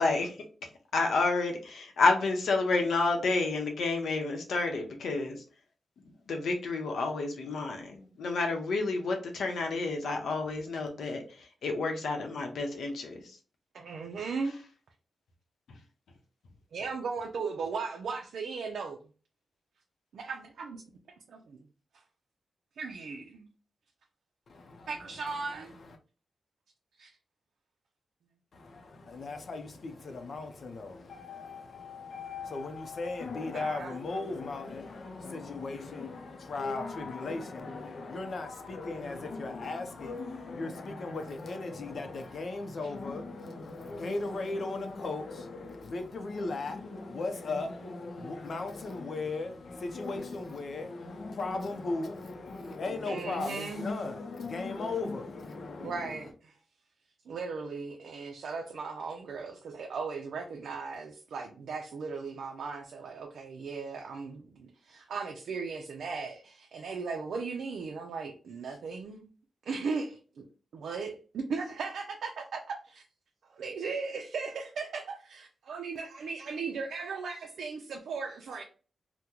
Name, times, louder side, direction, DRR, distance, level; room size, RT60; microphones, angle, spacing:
voice 1, 0.0-5.4 6.0-13.4 15.7-15.8, left 3 dB, 90° left, 0.8 m, -30 dB
voice 2, 13.7-14.5 16.7-19.0 20.1-20.8 21.3-21.6 22.8-23.5 24.9-25.7 33.5-33.9 53.1-53.9 55.8-56.3 57.3-69.3 69.7-70.4 70.7-73.0 73.5-78.6, right 4 dB, 85° right, 0.5 m, -37 dB
voice 3, 24.5-26.0 28.5-56.3, left 3 dB, 55° left, 0.6 m, -37 dB
2.9 x 2.1 x 3.6 m
wide cardioid pair, 120°, 0 cm